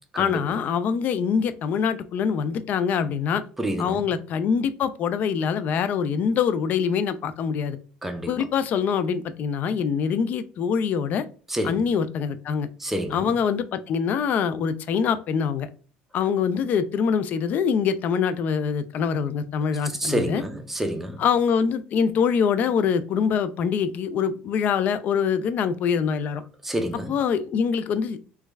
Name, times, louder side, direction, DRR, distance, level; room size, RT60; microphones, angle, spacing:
voice 1, 0.2-3.4 3.8-7.8 8.3-11.2 11.6-12.7 13.1-15.7 16.1-20.4 21.2-26.4 27.1-28.2, left 6 dB, 50° left, 0.3 m, -24 dB
voice 2, 3.6-4.0 8.0-8.3 11.5-11.8 12.8-13.3 20.0-21.2 26.6-27.1, right 1 dB, 5° right, 0.6 m, -28 dB
3.0 x 2.3 x 3.3 m
supercardioid pair, 110°, 4 cm